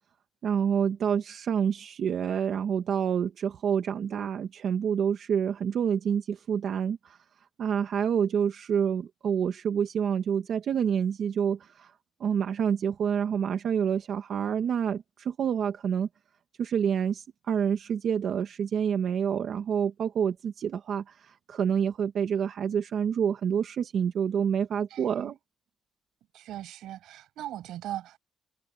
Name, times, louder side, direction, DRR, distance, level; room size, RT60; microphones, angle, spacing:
voice 1, 0.4-7.2 7.6-11.9 12.2-16.1 16.6-25.4, right 8 dB, 50° right, 1.2 m, -28 dB
voice 2, 24.9-25.4 26.3-28.2, right 13 dB, 85° right, 6.9 m, -39 dB
cardioid pair, 165°, 0 cm